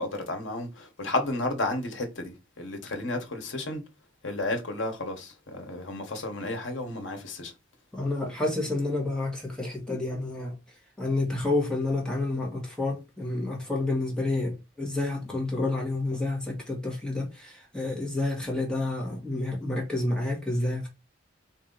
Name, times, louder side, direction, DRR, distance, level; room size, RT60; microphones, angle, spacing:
voice 1, 0.0-3.8 4.2-7.5, left 2 dB, 70° left, 1.2 m, -32 dB
voice 2, 7.9-20.9, left 2 dB, 5° left, 1.3 m, -29 dB
4.4 x 2.8 x 3.9 m
head